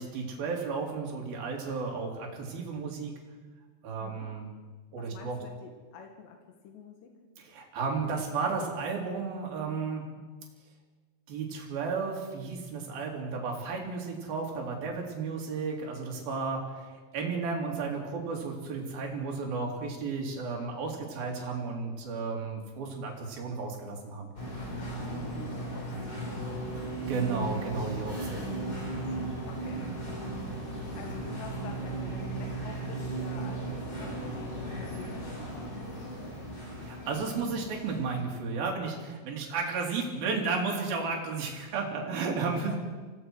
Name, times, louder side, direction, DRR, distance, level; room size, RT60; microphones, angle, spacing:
voice 1, 0.0-3.1 3.8-4.5 4.9-5.4 7.4-10.0 11.3-24.3 27.1-28.5 36.8-42.8, right 4 dB, 60° right, 0 dB, 4.8 m, -33 dB
voice 2, 4.0-4.3 5.0-7.1 24.8-26.7 28.2-29.2 29.5-29.9 30.9-36.2 42.5-42.8, left 6 dB, 80° left, 4 dB, 3.8 m, -48 dB
sound 1, 24.4-38.2, right 2 dB, 20° left, 5.4 m, -36 dB
25.5 x 17.0 x 6.3 m, 1.3 s
omnidirectional pair, 4.8 m